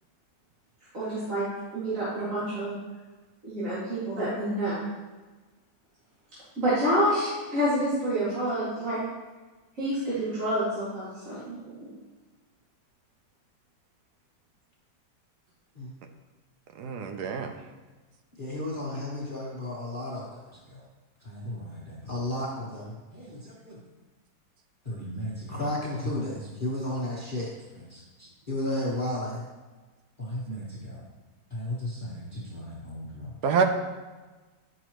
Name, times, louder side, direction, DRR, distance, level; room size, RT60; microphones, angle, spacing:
voice 1, 0.9-1.4 1.7-2.7 3.4-4.8 6.6-9.0 9.8-11.9, right 1 dB, 45° right, -12 dB, 2.6 m, -28 dB
voice 2, 16.8-17.5 33.4-33.6, right 6 dB, 70° right, 6 dB, 1.1 m, -26 dB
voice 3, 18.4-20.8 21.2-23.8 24.8-29.5 30.2-31.0 31.5-33.4, left 1 dB, 30° left, -6 dB, 1.2 m, -34 dB
9.2 x 6.3 x 3.0 m, 1.3 s
omnidirectional pair, 1.9 m